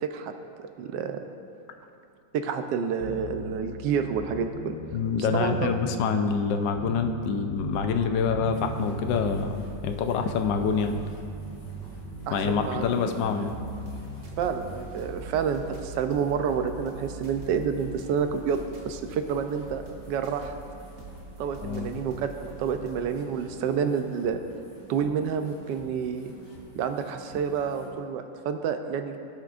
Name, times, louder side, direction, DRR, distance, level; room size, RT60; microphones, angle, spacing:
voice 1, 0.0-0.3 0.6-1.2 2.3-4.8 5.3-5.7 12.3-12.8 14.4-20.5 21.4-22.2 22.4-24.4 24.9-26.3 26.8-29.2, right 7 dB, 75° right, 7 dB, 1.2 m, -29 dB
sound 1, 3.0-14.8, right 2 dB, 5° left, 1.6 m, -38 dB
voice 2, 4.9-11.0 12.3-13.5 21.6-22.0, left 6 dB, 75° left, 6 dB, 1.2 m, -26 dB
sound 2, 8.5-27.9, left 1 dB, 55° left, 2.5 m, -50 dB
sound 3, 12.8-23.1, right 4 dB, 50° right, 0.7 m, -44 dB
16.5 x 5.9 x 2.5 m, 2.8 s
omnidirectional pair, 2.0 m